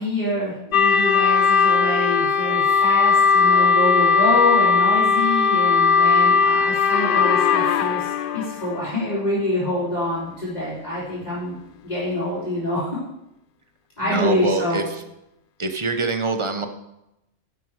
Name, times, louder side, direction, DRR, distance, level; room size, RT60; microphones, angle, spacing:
voice 1, 0.0-11.5 11.8-13.0 14.0-14.8, left 1 dB, 35° left, -10 dB, 3.5 m, -26 dB
sound 1, 0.7-8.8, left 5 dB, 60° left, 0.6 m, -18 dB
voice 2, 14.0-15.0 15.6-16.7, right 3 dB, 25° right, 7 dB, 0.8 m, -24 dB
11.5 x 7.7 x 4.7 m, 0.88 s
omnidirectional pair, 1.3 m